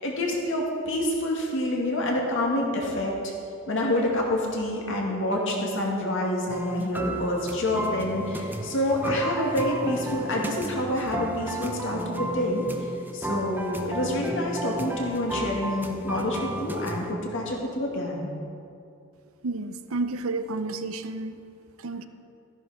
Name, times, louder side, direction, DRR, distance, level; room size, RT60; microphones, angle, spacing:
voice 1, 0.0-3.3 3.7-12.6 13.1-18.3, left 1 dB, 60° left, -1 dB, 2.3 m, -27 dB
sound 1, 6.5-17.1, right 1 dB, 10° right, 0.7 m, -33 dB
voice 2, 19.4-21.4 21.8-22.1, right 3 dB, 75° right, 10 dB, 0.7 m, -31 dB
13.5 x 10.5 x 5.1 m, 2.6 s
head